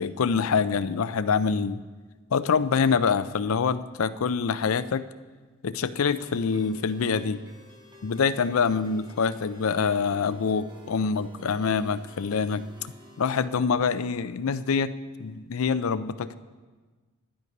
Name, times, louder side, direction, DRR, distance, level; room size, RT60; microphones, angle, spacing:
voice 1, 0.0-1.8 2.3-5.0 5.6-7.4 8.0-12.6 13.2-16.4, left 5 dB, 85° left, 14 dB, 0.5 m, -25 dB
sound 1, 6.1-13.5, left 1 dB, 20° right, 2.0 m, -51 dB
11.0 x 10.5 x 5.3 m, 1.4 s
head